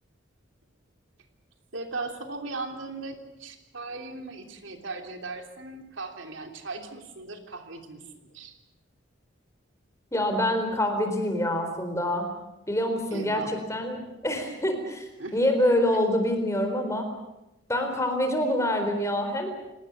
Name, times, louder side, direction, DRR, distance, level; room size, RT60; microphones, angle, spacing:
voice 1, 1.7-8.0 8.3-8.6 13.1-13.5 15.2-15.4, right 3 dB, 70° right, 5 dB, 3.1 m, -38 dB
voice 2, 10.1-12.3 12.7-15.0 15.3-17.1 17.7-19.5, left 1 dB, 15° left, 5 dB, 4.2 m, -26 dB
30.0 x 18.5 x 7.3 m, 0.96 s
head